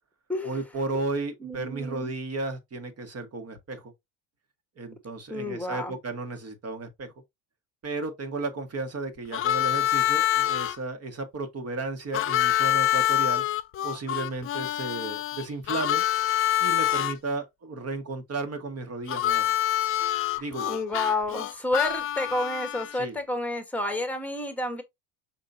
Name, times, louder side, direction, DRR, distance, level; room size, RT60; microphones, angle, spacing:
voice 1, 0.4-3.9 4.8-7.1 7.8-13.4 13.8-16.0 16.6-19.5 20.4-20.7 22.9-23.2, right 3 dB, 30° right, 1.3 m, -34 dB
voice 2, 1.4-2.1 5.3-5.9 20.3-24.8, left 2 dB, 5° left, 1.2 m, -30 dB
Harmonica, 9.3-10.8 12.1-17.1 19.1-23.0, left 12 dB, 30° left, 0.3 m, -26 dB
5.4 x 3.6 x 2.6 m
hypercardioid pair, 85°, 48 cm